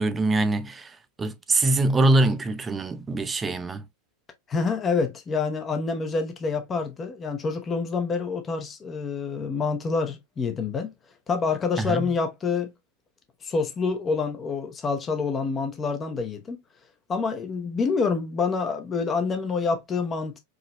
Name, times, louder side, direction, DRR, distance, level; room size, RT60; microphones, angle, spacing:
voice 1, 0.0-3.8 11.8-12.1, right 2 dB, 15° right, 0.5 m, -24 dB
voice 2, 4.5-10.9 11.3-12.7 13.4-16.6 17.1-20.4, left 4 dB, 20° left, 0.8 m, -27 dB
4.9 x 3.1 x 2.9 m
figure-of-eight pair, 90°, 0 cm